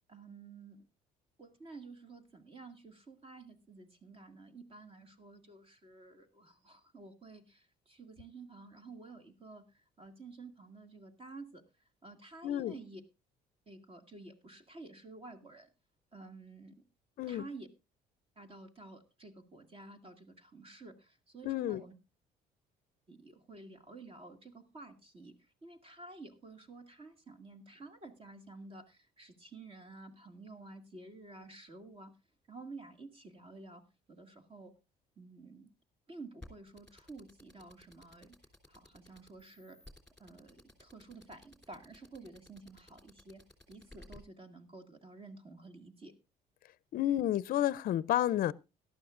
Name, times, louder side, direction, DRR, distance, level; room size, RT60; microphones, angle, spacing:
voice 1, 0.1-0.9 1.4-13.0 13.7-15.7 16.1-16.8 17.3-17.7 18.4-21.9 23.1-32.1 32.5-33.8 34.1-34.7 35.2-35.7 36.1-38.4 38.7-39.8 40.2-43.4 43.7-46.1, right 3 dB, 35° right, 2.1 m, -51 dB
voice 2, 12.4-12.7 17.2-17.5 21.4-21.8 46.9-48.5, left 12 dB, 60° left, 0.5 m, -30 dB
sound 1, 36.4-44.2, left 1 dB, 5° left, 3.0 m, -55 dB
17.5 x 12.0 x 2.5 m
cardioid pair, 110°, 17 cm